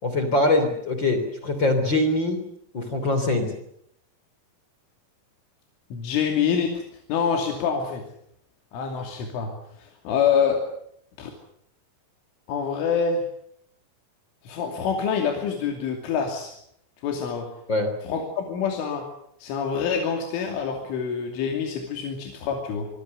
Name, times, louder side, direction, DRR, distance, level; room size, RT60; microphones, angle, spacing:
voice 1, 0.0-2.4 2.7-3.5 17.7-17.9, left 2 dB, 25° left, 7 dB, 3.3 m, -23 dB
voice 2, 5.9-6.8 7.1-8.0 8.7-10.6 11.2-11.3 12.5-13.2 14.4-16.6 17.0-17.5 18.0-19.1 19.4-22.9, left 6 dB, 90° left, 2 dB, 5.3 m, -26 dB
26.0 x 23.0 x 6.8 m, 0.70 s
omnidirectional pair, 5.4 m